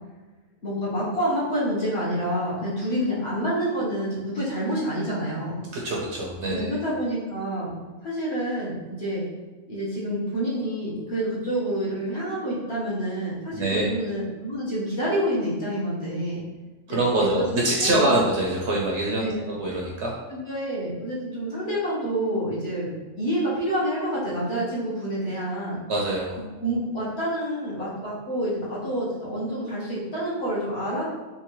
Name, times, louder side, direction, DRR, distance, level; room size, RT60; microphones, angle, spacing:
voice 1, 0.6-5.6 6.5-7.7 8.0-9.2 9.7-16.4 16.9-17.3 17.8-18.2 19.2-19.4 20.3-25.8 26.6-31.0, equal, 50° left, -7 dB, 1.2 m, -28 dB
voice 2, 5.7-6.7 13.5-13.9 16.9-20.1 25.9-26.4, right 2 dB, 65° right, -2 dB, 0.8 m, -24 dB
3.6 x 2.6 x 2.9 m, 1.2 s
omnidirectional pair, 1.5 m